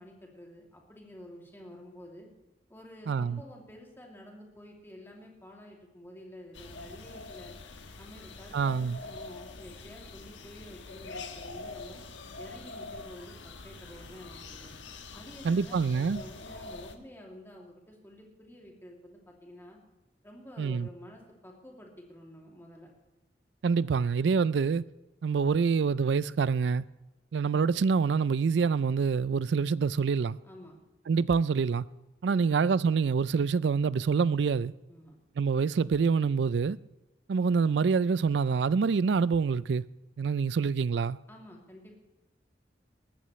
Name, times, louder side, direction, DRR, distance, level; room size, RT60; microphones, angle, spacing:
voice 1, 0.0-2.3 2.7-7.5 8.0-12.0 12.4-14.8 15.1-19.8 20.2-22.9 30.4-30.8 32.3-32.5 34.9-35.2 41.3-42.0, left 1 dB, 15° left, 2.6 m, -49 dB
voice 2, 3.1-3.4 8.5-9.0 15.4-16.2 20.6-20.9 23.6-24.9 25.2-26.8 27.3-30.4 31.1-31.9 32.2-34.7 35.4-36.8 37.3-39.8 40.2-41.2, right 5 dB, 70° right, 0.4 m, -26 dB
sound 1, 6.5-16.9, left 3 dB, 90° left, 1.3 m, -45 dB
20.0 x 14.0 x 3.2 m
head